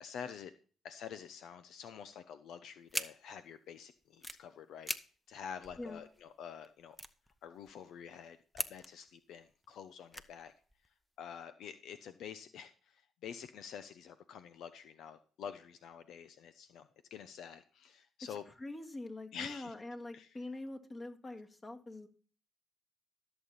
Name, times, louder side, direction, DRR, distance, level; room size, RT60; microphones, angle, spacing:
voice 1, 0.0-0.5 0.8-4.9 5.3-7.0 7.4-10.5 11.2-18.4 19.3-19.7 20.1-20.3, left 8 dB, 75° left, 11 dB, 0.7 m, -48 dB
sound 1, 2.9-3.1 4.0-4.4 4.8-5.0 5.3-5.4 5.6-6.2 6.6-6.7 6.9-7.9 8.5-9.1 9.5-9.7 10.1-10.9, equal, ahead, 0.8 m, -40 dB
voice 2, 18.6-22.1, left 2 dB, 25° left, 4 dB, 2.0 m, -44 dB
14.0 x 7.2 x 4.0 m, 0.39 s
cardioid pair, 90°, 0 cm